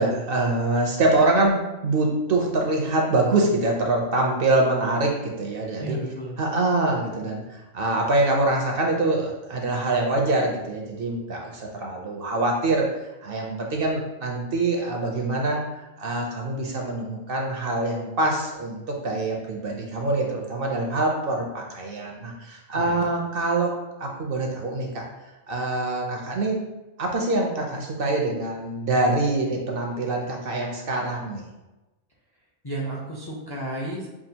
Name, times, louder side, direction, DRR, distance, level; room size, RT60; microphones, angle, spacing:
voice 1, 0.0-6.0 6.4-12.9 13.2-15.6 16.0-25.0 25.5-26.6 27.0-31.5, right 2 dB, 60° right, 0 dB, 0.7 m, -24 dB
voice 2, 5.8-6.4 22.7-23.0 32.6-34.1, right 1 dB, 30° left, -3 dB, 0.5 m, -32 dB
5.9 x 2.4 x 2.8 m, 1.0 s
omnidirectional pair, 1.2 m